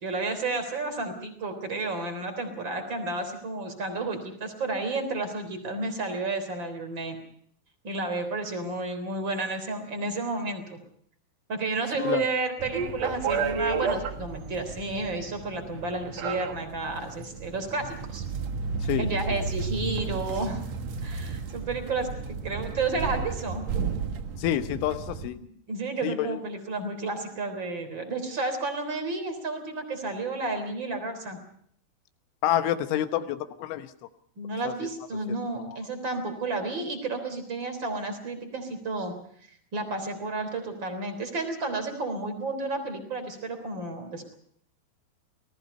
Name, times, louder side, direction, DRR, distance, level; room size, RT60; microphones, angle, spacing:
voice 1, 0.0-7.2 7.8-10.8 11.5-18.2 19.0-20.6 21.0-23.7 25.7-31.4 34.4-39.1 39.7-44.3, right 3 dB, 25° right, 7 dB, 3.7 m, -31 dB
sound 1, 12.6-25.3, right 5 dB, 80° right, 1.5 m, -32 dB
voice 2, 24.4-25.4 26.0-26.4 32.4-33.9 34.7-34.9 35.6-35.8, left 12 dB, 85° left, 10 dB, 3.7 m, -28 dB
27.5 x 19.0 x 5.5 m, 0.65 s
omnidirectional pair, 5.4 m